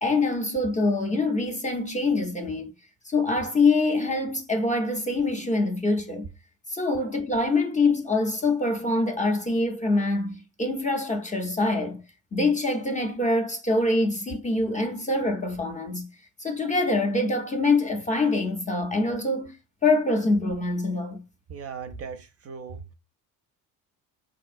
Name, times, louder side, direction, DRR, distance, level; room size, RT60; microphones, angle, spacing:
voice 1, 0.0-2.7 3.1-6.3 6.7-12.0 12.3-16.1 16.4-19.5 19.8-21.2, left 2 dB, 20° left, 0.5 m, -25 dB
voice 2, 21.5-22.9, right 6 dB, 35° right, 0.5 m, -38 dB
3.3 x 2.6 x 2.4 m
supercardioid pair, 90°, 41 cm